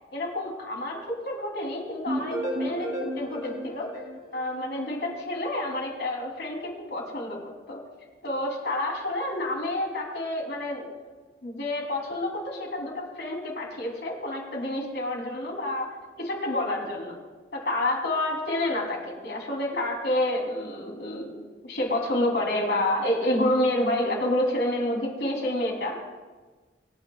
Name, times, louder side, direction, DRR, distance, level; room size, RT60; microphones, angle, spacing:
voice 1, 0.1-3.9 4.3-7.4 7.7-7.8 8.2-10.9 11.4-17.2 17.5-26.0, left 1 dB, 70° left, -1 dB, 3.3 m, -29 dB
sound 1, 2.1-5.0, equal, 45° right, 3.0 m, -33 dB
25.5 x 9.6 x 2.4 m, 1.3 s
head